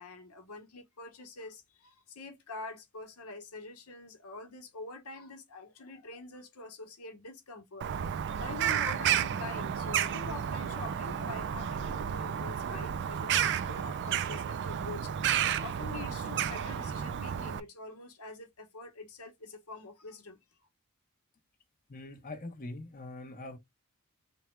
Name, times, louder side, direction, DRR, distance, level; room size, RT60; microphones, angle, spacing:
voice 1, 0.0-7.9 8.2-15.1 15.4-20.4, left 3 dB, 80° left, 1.1 m, -45 dB
Bird vocalization bird call bird song, 7.8-17.6, right 9 dB, 55° right, 0.4 m, -32 dB
voice 2, 21.9-23.6, left 2 dB, 40° left, 0.9 m, -43 dB
3.5 x 2.3 x 4.3 m
head